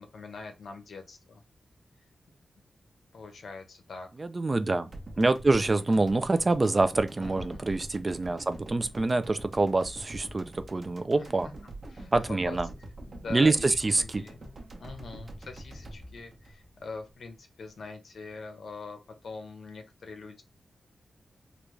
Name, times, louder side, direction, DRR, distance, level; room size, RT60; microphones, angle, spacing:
voice 1, 0.0-1.4 3.1-4.1 5.1-5.3 7.2-7.6 11.1-11.3 11.9-12.6 13.1-14.4 14.8-20.4, left 4 dB, 70° left, 0.8 m, -43 dB
voice 2, 4.2-4.9 5.2-11.5 12.1-12.7 13.3-14.2, right 2 dB, 25° right, 0.3 m, -26 dB
sound 1, 4.9-17.3 17.5-17.6, right 1 dB, 45° right, 0.9 m, -45 dB
3.8 x 2.3 x 3.1 m
wide cardioid pair, 135°, 0 cm